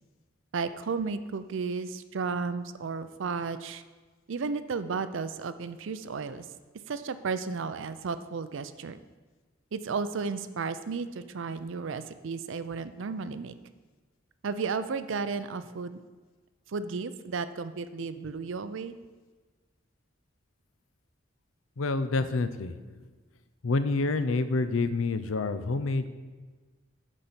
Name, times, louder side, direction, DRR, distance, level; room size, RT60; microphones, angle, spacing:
voice 1, 0.5-3.8 4.3-6.4 6.9-9.0 9.7-13.5 14.4-16.0 16.7-18.9, right 4 dB, 70° right, 12 dB, 0.5 m, -33 dB
voice 2, 21.8-23.1 23.6-26.1, left 3 dB, 90° left, 11 dB, 0.6 m, -28 dB
9.9 x 4.2 x 6.8 m, 1.4 s
head